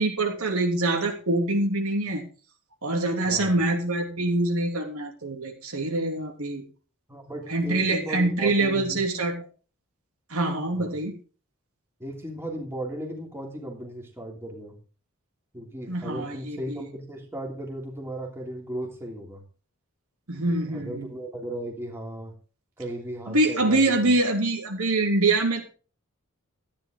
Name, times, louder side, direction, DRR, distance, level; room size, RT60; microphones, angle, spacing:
voice 1, 0.0-2.2 2.8-6.6 7.5-9.3 10.3-11.1 15.9-16.8 20.3-21.1 23.3-25.7, right 2 dB, 70° right, 2 dB, 3.1 m, -25 dB
voice 2, 3.2-3.5 7.1-9.0 10.7-11.0 12.0-14.8 15.5-19.4 20.7-22.3 22.8-24.1, right 1 dB, 10° right, 0 dB, 3.0 m, -36 dB
14.0 x 10.0 x 3.8 m, 0.38 s
head